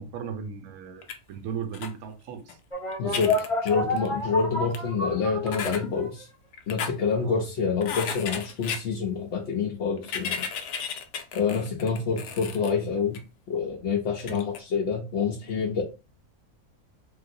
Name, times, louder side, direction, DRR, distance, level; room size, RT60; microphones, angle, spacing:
voice 1, 0.0-2.6 7.2-7.5 12.1-12.4 14.2-14.5, right 7 dB, 70° right, 0.9 m, -37 dB
sound 1, 1.0-1.2 1.7-1.9 2.5-2.6 2.9-4.2 4.7-4.8 5.5-5.8 6.5-6.9 7.8-8.8 10.0-12.7 13.1-13.2 14.2-14.6, left 7 dB, 85° left, 1.1 m, -34 dB
sound 2, 2.7-6.2, left 2 dB, 25° left, 1.0 m, -29 dB
voice 2, 3.0-6.3 6.7-10.5 11.3-13.2 13.5-15.8, left 5 dB, 60° left, 0.8 m, -27 dB
3.2 x 2.7 x 2.6 m
omnidirectional pair, 1.6 m